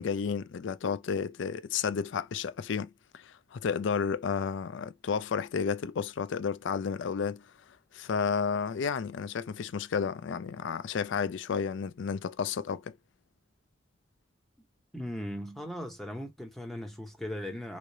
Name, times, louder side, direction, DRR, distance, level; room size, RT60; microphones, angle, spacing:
voice 1, 0.0-7.4 7.9-12.9, left 6 dB, 70° left, 0.4 m, -32 dB
voice 2, 14.9-17.8, equal, ahead, 0.7 m, -38 dB
3.7 x 3.2 x 2.7 m
head